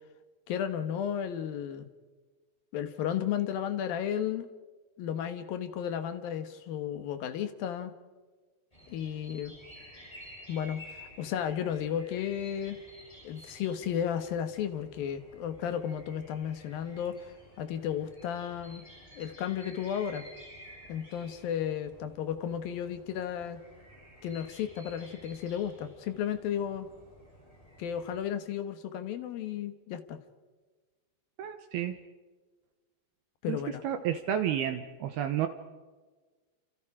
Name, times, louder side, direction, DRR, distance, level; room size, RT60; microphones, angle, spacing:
voice 1, 0.5-1.9 2.7-4.5 5.0-7.9 8.9-9.5 10.5-12.8 13.2-17.3 17.6-18.8 19.2-20.3 20.9-23.6 24.2-26.9 27.8-30.2 33.4-33.8, left 9 dB, 65° left, 9 dB, 2.4 m, -33 dB
sound 1, 8.7-28.2, equal, 5° left, 7.1 m, -53 dB
voice 2, 31.4-32.0 33.5-33.6 33.8-35.5, right 10 dB, 75° right, 8 dB, 2.5 m, -31 dB
29.0 x 28.0 x 4.9 m, 1.3 s
omnidirectional pair, 5.6 m